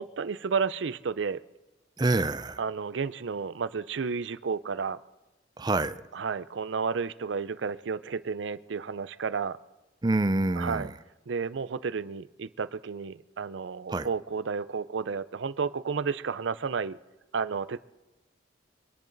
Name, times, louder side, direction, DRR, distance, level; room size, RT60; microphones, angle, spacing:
voice 1, 0.0-1.4 2.6-5.0 6.1-9.6 10.6-10.9 11.3-17.0 17.3-17.8, right 5 dB, 75° right, 0.5 m, -32 dB
voice 2, 2.0-2.6 5.6-6.0 10.0-10.9 13.9-14.1, right 2 dB, 20° right, 0.5 m, -26 dB
24.0 x 10.5 x 4.0 m
head